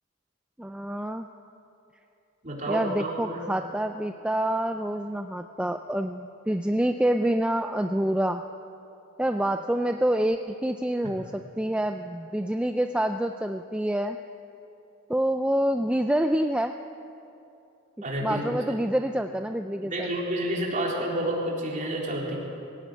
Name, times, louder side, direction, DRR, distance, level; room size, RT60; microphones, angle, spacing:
voice 1, 0.6-1.3 2.7-8.4 9.2-11.3 11.6-14.2 15.1-16.7 18.2-20.1, right 1 dB, 5° right, 6 dB, 0.4 m, -27 dB
voice 2, 2.4-3.4 18.0-18.6 19.9-22.4, right 1 dB, 35° right, -3 dB, 3.9 m, -29 dB
19.5 x 16.5 x 9.2 m, 2.8 s
head